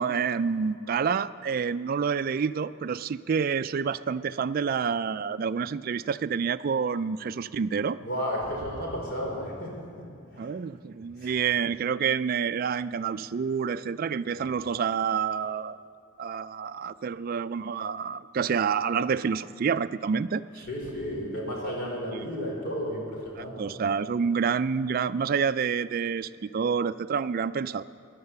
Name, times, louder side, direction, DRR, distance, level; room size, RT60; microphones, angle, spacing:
voice 1, 0.0-8.0 10.4-15.8 16.2-20.6 22.1-22.3 23.4-27.8, right 6 dB, 45° right, 13 dB, 0.3 m, -28 dB
voice 2, 8.0-9.7 10.3-10.5 11.2-11.3 14.4-14.5 20.7-23.8, equal, 55° left, -1 dB, 3.9 m, -33 dB
16.0 x 11.0 x 6.9 m, 2.4 s
head